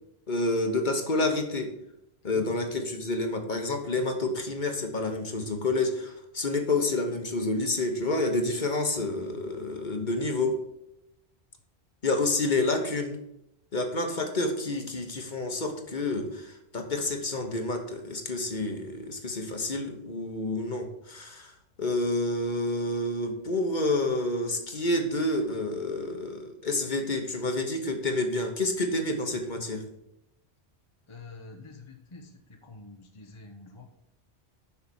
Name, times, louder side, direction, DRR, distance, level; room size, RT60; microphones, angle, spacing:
voice 1, 0.3-1.7 2.2-10.6 12.0-13.1 13.7-21.5 21.8-29.9, left 2 dB, 45° left, 5 dB, 1.4 m, -29 dB
voice 2, 31.1-34.0, left 3 dB, 30° left, 3 dB, 0.9 m, -47 dB
6.9 x 5.8 x 7.1 m, 0.81 s
omnidirectional pair, 1.1 m